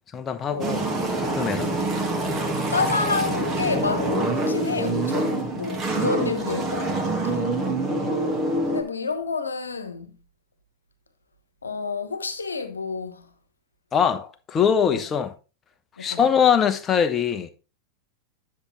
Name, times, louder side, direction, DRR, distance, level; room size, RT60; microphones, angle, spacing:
voice 1, 0.1-0.9 1.2-1.7 13.9-15.3 16.0-17.5, left 7 dB, 25° left, 0.9 m, -22 dB
sound 1, 0.6-8.8, right 2 dB, 25° right, 1.7 m, -26 dB
voice 2, 2.7-7.5 8.7-10.1 11.6-13.3 14.9-15.0 16.0-16.3, left 4 dB, 75° left, 1.1 m, -29 dB
10.0 x 6.7 x 3.1 m
figure-of-eight pair, 90°, 0 cm